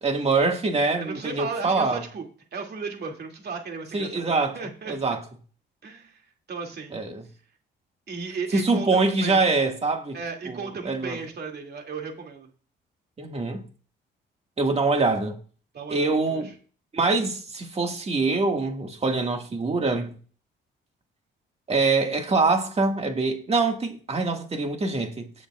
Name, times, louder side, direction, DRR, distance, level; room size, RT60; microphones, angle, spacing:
voice 1, 0.0-2.0 3.9-4.6 4.9-5.2 6.9-7.3 8.5-10.2 10.5-11.2 13.2-13.7 14.6-15.4 15.9-16.5 16.9-20.2 21.7-25.3, right 3 dB, 30° right, 1.9 m, -24 dB
voice 2, 1.0-2.2 2.5-5.2 5.8-6.2 6.5-7.0 8.1-9.4 10.1-12.5 15.7-16.5, right 4 dB, 55° right, 2.6 m, -35 dB
18.5 x 7.1 x 2.5 m
cardioid pair, 90°, 20 cm